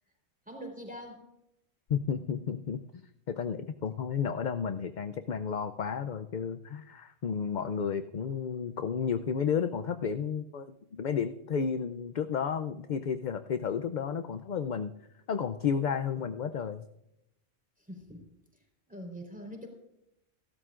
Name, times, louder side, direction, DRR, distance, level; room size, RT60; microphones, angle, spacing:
voice 1, 0.5-1.2 17.9-18.3 18.9-19.7, equal, 5° right, 2 dB, 3.9 m, -43 dB
voice 2, 1.9-2.8 3.3-14.9 15.3-16.9, left 7 dB, 50° left, 9 dB, 0.6 m, -32 dB
30.0 x 12.5 x 2.5 m, 0.84 s
omnidirectional pair, 1.1 m